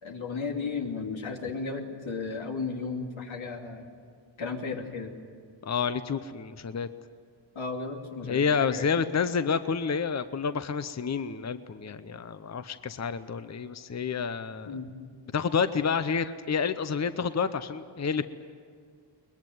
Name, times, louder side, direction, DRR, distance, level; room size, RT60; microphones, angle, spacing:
voice 1, 0.0-3.9 4.4-5.1 7.5-8.9 14.7-14.9, left 4 dB, 90° left, 1 dB, 2.9 m, -34 dB
voice 2, 5.6-6.9 8.2-14.8 15.3-18.2, left 6 dB, 35° left, 11 dB, 0.7 m, -29 dB
22.0 x 20.5 x 9.4 m, 2.1 s
wide cardioid pair, 100°, 46 cm